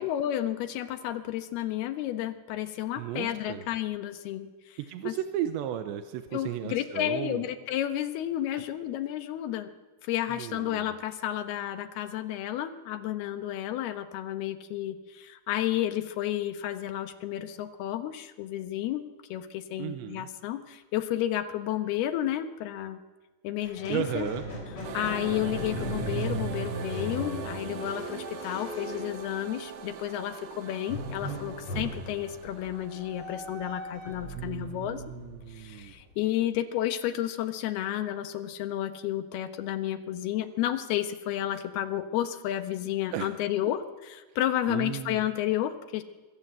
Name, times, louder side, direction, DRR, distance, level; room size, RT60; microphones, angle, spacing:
voice 1, 0.0-4.8 5.0-5.1 6.3-9.7 10.0-19.0 19.3-23.0 23.4-24.3 24.9-35.0 35.5-46.0, left 12 dB, 70° left, 9 dB, 2.9 m, -31 dB
voice 2, 3.0-3.7 4.8-7.5 10.3-11.0 19.8-20.3 23.9-24.4 34.4-35.9 43.1-43.3 43.6-43.7 44.7-45.3, right 11 dB, 85° right, 7 dB, 3.3 m, -35 dB
Squeak, 23.6-29.9 30.9-36.1, right 1 dB, 30° left, 6.6 m, -38 dB
sound 1, 24.8-35.2, right 9 dB, 65° right, 2.0 m, -43 dB
24.0 x 23.5 x 7.7 m, 1.3 s
omnidirectional pair, 5.1 m